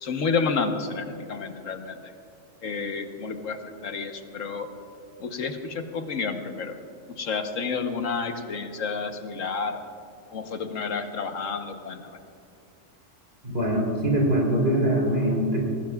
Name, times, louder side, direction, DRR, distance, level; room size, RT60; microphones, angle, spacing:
voice 1, 0.0-2.0 2.6-4.7 5.2-6.8 7.1-9.8 10.3-12.2, left 5 dB, 75° left, 6 dB, 1.4 m, -30 dB
voice 2, 13.4-15.6, right 1 dB, 45° right, -2 dB, 3.9 m, -23 dB
23.0 x 18.0 x 2.4 m, 2.6 s
omnidirectional pair, 1.4 m